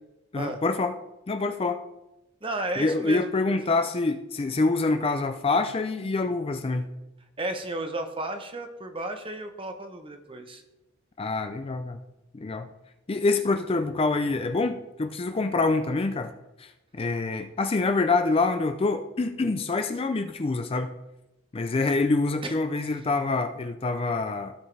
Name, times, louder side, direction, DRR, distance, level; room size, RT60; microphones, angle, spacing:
voice 1, 0.3-0.9 1.3-1.8 2.8-6.9 11.2-12.0 12.3-12.7 13.1-16.3 16.6-20.9 21.5-24.5, left 3 dB, 25° left, 8 dB, 0.4 m, -26 dB
voice 2, 2.4-3.3 7.4-10.6 22.4-22.5, right 1 dB, 25° right, 6 dB, 0.9 m, -33 dB
16.0 x 5.4 x 3.3 m, 0.94 s
head